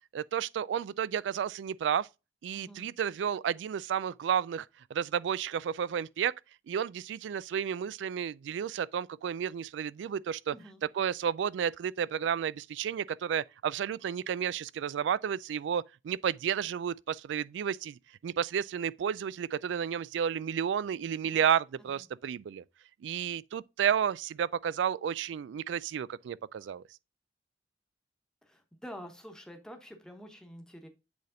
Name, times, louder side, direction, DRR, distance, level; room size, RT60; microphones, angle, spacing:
voice 1, 0.1-2.1 2.4-6.3 6.7-10.5 11.0-22.6 23.0-26.8, right 8 dB, 80° right, 0.3 m, -32 dB
voice 2, 2.5-2.9 10.5-10.8 21.2-21.5 21.9-22.0 28.4-30.9, equal, 5° left, 1.1 m, -48 dB
7.9 x 3.4 x 3.8 m
head